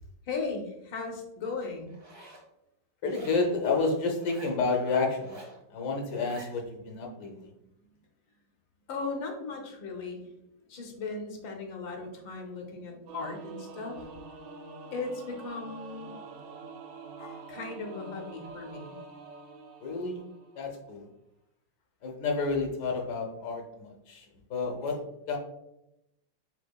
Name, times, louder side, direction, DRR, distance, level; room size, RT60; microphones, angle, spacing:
voice 1, 0.2-2.0 8.9-10.3 10.7-14.1 14.9-16.1 17.5-19.0, left 4 dB, 85° left, 2 dB, 1.7 m, -37 dB
Zipper (clothing), 1.9-2.5 3.1-3.6 4.1-4.6 5.1-5.6 6.1-6.5, right 1 dB, 45° right, 0.3 m, -49 dB
voice 2, 3.0-5.4 5.7-7.5 17.2-17.5 19.8-20.2 20.6-21.1 22.0-25.0 25.3-25.4, left 4 dB, 70° left, 2 dB, 1.3 m, -30 dB
Singing / Musical instrument, 13.1-20.8, right 4 dB, 75° right, 1.3 m, -46 dB
4.9 x 4.4 x 2.3 m, 0.85 s
omnidirectional pair, 2.0 m